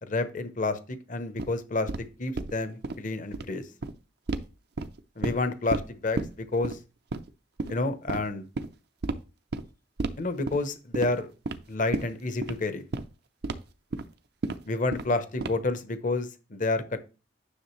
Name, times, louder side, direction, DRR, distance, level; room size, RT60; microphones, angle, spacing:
voice 1, 0.0-3.7 5.2-6.8 7.7-8.5 10.2-11.3 11.7-12.8 14.6-17.0, left 2 dB, 45° left, 10 dB, 0.9 m, -29 dB
sound 1, 1.4-1.5 1.9-2.0 2.4-2.5 2.8-2.9 3.2-3.4 3.8-3.9 4.3-4.4 4.8-5.4 5.7-5.8 6.2-6.3 6.6-6.7 7.1-7.3 7.6-7.7 8.1-8.2 8.5-8.7 9.0-9.1 9.5-9.6 10.0-10.1 10.5-10.6 10.9-11.1 11.4-11.6 11.9-12.1 12.4-12.5 12.9-13.0 13.4-13.5 13.9-14.0 14.4-14.5 14.9-15.1 15.4-15.7, right 3 dB, 60° right, 0.6 m, -31 dB
9.9 x 6.2 x 3.2 m, 0.32 s
head